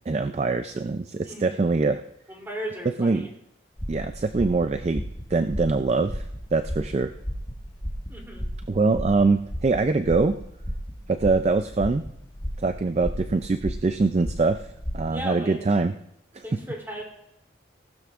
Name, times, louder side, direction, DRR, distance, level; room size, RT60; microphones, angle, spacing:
voice 1, 0.1-2.0 3.0-3.3 3.9-5.0 5.3-6.2 6.5-7.1 8.7-10.4 11.1-12.0 12.6-14.6 14.9-15.9 16.3-16.4, right 3 dB, 35° right, 9 dB, 0.3 m, -23 dB
voice 2, 1.2-1.6 2.3-3.3 8.1-8.4 15.1-15.6 16.4-17.0, equal, 10° right, -2 dB, 3.0 m, -36 dB
sound 1, 3.8-15.1, equal, 20° left, 1.3 m, -34 dB
18.5 x 12.5 x 2.5 m, 0.77 s
head